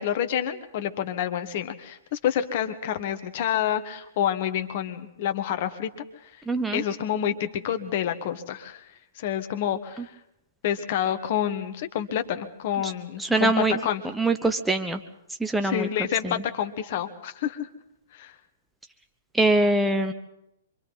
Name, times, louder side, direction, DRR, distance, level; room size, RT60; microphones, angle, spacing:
voice 1, 0.0-5.9 6.2-6.3 6.7-8.8 9.1-10.1 10.6-13.5 13.8-14.0 15.6-17.7 18.1-18.3, left 10 dB, 45° left, 9 dB, 1.4 m, -28 dB
voice 2, 6.5-6.8 12.8-12.9 13.2-13.8 14.1-15.0 15.4-15.9 16.2-16.3 19.3-20.1, right 2 dB, 5° right, 6 dB, 0.9 m, -23 dB
26.0 x 24.5 x 4.1 m, 0.81 s
figure-of-eight pair, 115°, 0 cm